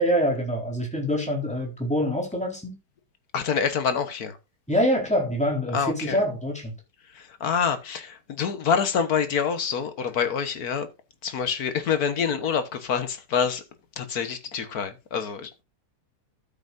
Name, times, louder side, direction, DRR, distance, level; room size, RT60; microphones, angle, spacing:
voice 1, 0.0-2.8 4.7-6.7, equal, 5° left, 4.2 m, -25 dB
voice 2, 3.3-4.4 5.7-6.2 7.1-10.9 11.2-13.6 14.0-15.5, left 6 dB, 60° left, 1.7 m, -26 dB
13.0 x 7.8 x 2.6 m
omnidirectional pair, 1.8 m